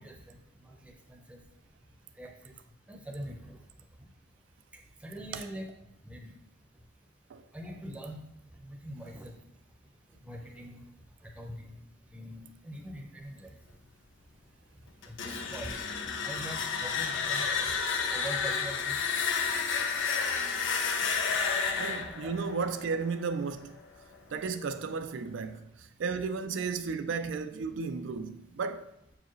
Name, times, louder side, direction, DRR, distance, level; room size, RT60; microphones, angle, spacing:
voice 1, 0.0-1.4 2.2-2.6 2.9-3.6 5.0-5.7 6.0-6.3 7.5-8.2 8.6-9.3 10.2-10.8 11.2-11.8 12.1-13.5 15.1-15.8 16.2-17.5 18.1-18.9 22.0-22.4, right 1 dB, 5° right, 0.7 m, -43 dB
sound 1, 15.0-23.8, left 5 dB, 85° left, 0.6 m, -31 dB
voice 2, 21.8-23.8 24.3-28.9, right 5 dB, 75° right, 0.4 m, -34 dB
6.7 x 4.7 x 3.1 m
head